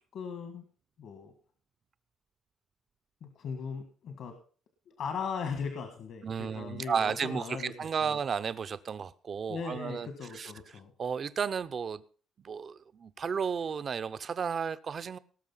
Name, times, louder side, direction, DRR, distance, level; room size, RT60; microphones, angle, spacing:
voice 1, 0.1-0.6 1.0-1.3 3.2-4.3 4.9-7.7 8.1-8.2 9.5-10.9, left 6 dB, 60° left, 1.7 m, -38 dB
voice 2, 6.2-10.5 11.0-12.0 12.4-15.2, right 6 dB, 35° right, 0.6 m, -33 dB
18.5 x 6.5 x 5.6 m
cardioid pair, 145°, 0 cm